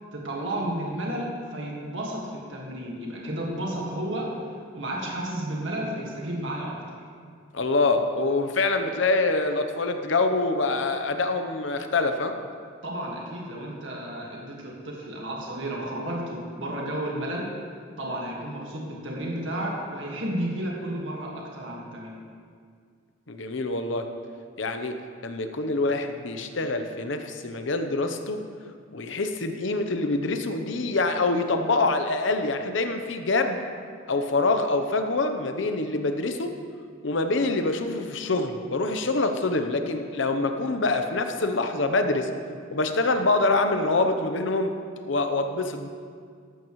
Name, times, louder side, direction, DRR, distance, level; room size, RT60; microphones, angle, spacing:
voice 1, 0.1-4.4 4.7-7.0 12.8-17.5 18.0-22.2, right 1 dB, 70° right, -2 dB, 1.8 m, -32 dB
voice 2, 7.5-12.3 23.3-24.1 24.6-25.0 25.2-28.4 28.9-33.6 34.1-36.5 37.0-42.3 42.7-44.7 45.0-45.9, left 3 dB, 70° left, 7 dB, 0.8 m, -25 dB
14.0 x 12.0 x 3.1 m, 2.1 s
head